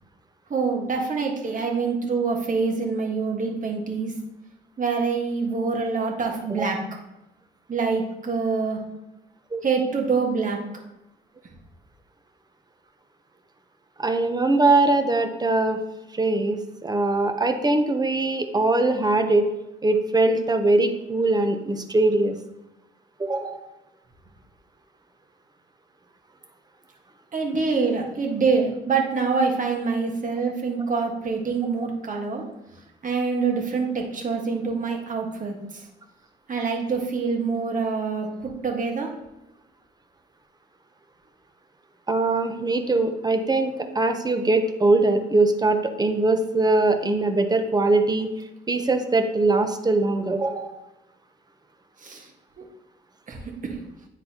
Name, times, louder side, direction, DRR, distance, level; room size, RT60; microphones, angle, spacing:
voice 1, 0.5-4.1 4.8-6.8 7.7-8.8 9.6-10.6 27.3-32.4 33.0-35.8 36.5-39.1 52.0-52.3 52.6-52.7 53.3-53.4 53.6-53.8, right 4 dB, 40° right, 1 dB, 1.5 m, -25 dB
voice 2, 14.0-15.8 16.1-19.5 19.8-22.4 23.2-23.6 30.4-30.5 42.1-48.3 48.7-50.7, right 2 dB, 20° right, 7 dB, 0.8 m, -22 dB
9.7 x 4.0 x 2.9 m, 0.93 s
cardioid pair, 90°, 20 cm